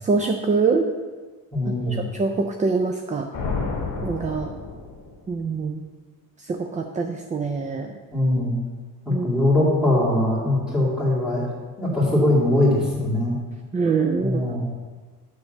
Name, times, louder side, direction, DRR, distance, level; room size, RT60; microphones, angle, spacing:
voice 1, 0.0-0.9 2.1-3.3 4.0-4.5 5.3-5.8 6.4-7.9 9.1-9.3 13.7-14.4, right 4 dB, 20° right, 4 dB, 0.3 m, -24 dB
voice 2, 1.5-2.0 8.1-8.6 9.0-11.5 11.8-13.3 14.2-14.6, left 1 dB, ahead, -7 dB, 2.3 m, -21 dB
sound 1, 3.3-5.3, left 4 dB, 60° left, 1.5 m, -30 dB
9.7 x 3.4 x 6.6 m, 1.4 s
wide cardioid pair, 170°, 36 cm